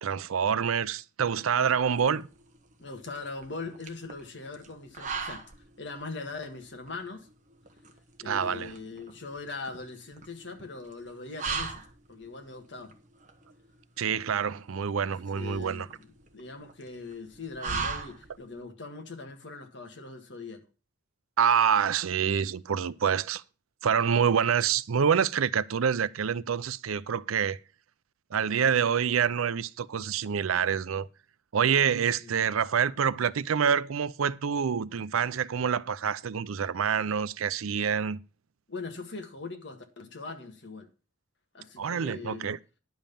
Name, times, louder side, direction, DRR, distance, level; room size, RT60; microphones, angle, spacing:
voice 1, 0.0-2.3 8.2-8.7 14.0-15.9 21.4-23.4 23.8-27.6 28.3-31.1 31.5-38.2 41.8-42.6, right 7 dB, 85° right, 0.5 m, -26 dB
sound 1, 1.6-18.6, right 5 dB, 35° right, 1.2 m, -40 dB
voice 2, 2.8-5.4 5.8-7.3 8.2-13.0 15.3-16.0 16.3-20.6 32.2-32.4 38.7-40.9 41.5-42.5, left 3 dB, 60° left, 1.7 m, -41 dB
10.5 x 5.5 x 6.9 m
head